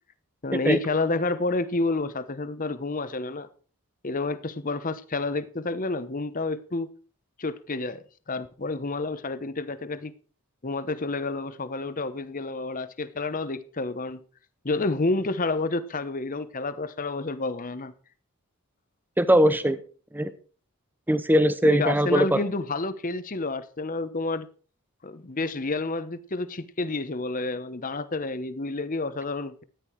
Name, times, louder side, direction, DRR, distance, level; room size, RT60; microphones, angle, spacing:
voice 1, 0.4-3.5 4.0-6.9 7.4-8.0 8.3-10.1 10.6-14.2 14.6-17.9 21.6-24.5 25.0-29.6, left 3 dB, 35° left, 1.0 m, -29 dB
voice 2, 19.2-19.8 20.1-20.3 21.1-22.4, equal, 10° right, 0.8 m, -20 dB
13.5 x 10.5 x 4.7 m
head